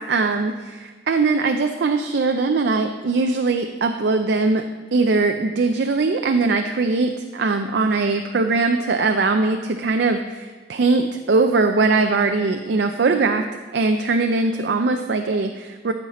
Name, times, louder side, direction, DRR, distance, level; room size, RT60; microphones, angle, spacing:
voice 1, 0.0-4.6 4.9-13.5 13.7-15.9, right 3 dB, 65° right, 6 dB, 0.4 m, -21 dB
14.0 x 5.7 x 4.2 m, 1.4 s
head